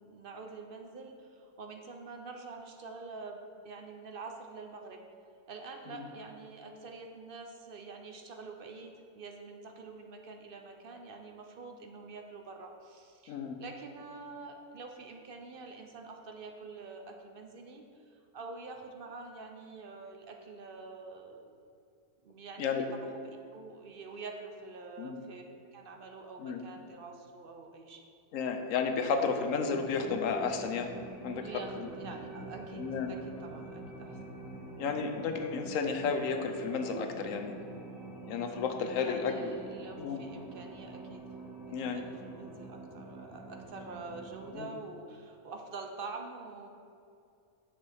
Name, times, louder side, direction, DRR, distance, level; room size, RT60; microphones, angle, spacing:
voice 1, 0.0-5.0 5.5-21.5 22.2-25.4 25.7-28.1 31.4-34.4 39.0-41.2 41.7-46.7, right 3 dB, 55° right, 3 dB, 0.6 m, -46 dB
voice 2, 13.3-13.6 22.6-22.8 25.0-25.2 26.4-26.7 28.3-30.9 31.2-31.5 31.8-31.9 32.8-33.1 34.8-37.5 38.3-39.6 40.0-40.2 41.7-42.1 44.5-44.7, left 5 dB, 65° left, 5 dB, 1.0 m, -32 dB
sound 1, 29.7-44.5, right 2 dB, ahead, 1.3 m, -46 dB
8.0 x 6.9 x 3.5 m, 2.5 s
omnidirectional pair, 1.6 m